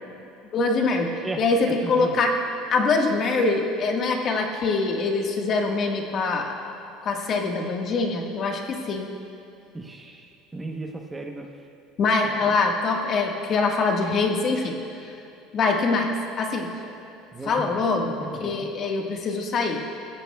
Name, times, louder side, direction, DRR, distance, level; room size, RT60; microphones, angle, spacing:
voice 1, 0.5-2.3 2.7-6.5 7.0-9.1 12.0-14.7 15.5-17.0 17.5-19.8, left 3 dB, 40° left, 1 dB, 1.6 m, -24 dB
voice 2, 1.2-2.2 9.7-11.5 12.4-12.5 17.3-18.7, right 2 dB, 15° right, 2 dB, 0.9 m, -36 dB
23.0 x 15.5 x 2.3 m, 2.8 s
cardioid pair, 135°, 0 cm